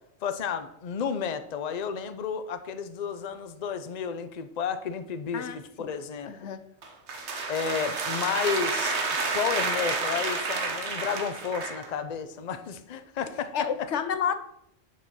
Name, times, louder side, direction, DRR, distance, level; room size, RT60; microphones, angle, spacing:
voice 1, 0.2-6.5 7.5-9.0 9.3-13.7, left 7 dB, 45° left, 0.7 m, -32 dB
voice 2, 5.3-5.9 6.3-6.6 13.5-14.4, left 7 dB, 85° left, 1.1 m, -30 dB
sound 1, 6.8-11.9, right 3 dB, 80° right, 1.4 m, -30 dB
7.5 x 6.8 x 6.2 m
omnidirectional pair, 1.1 m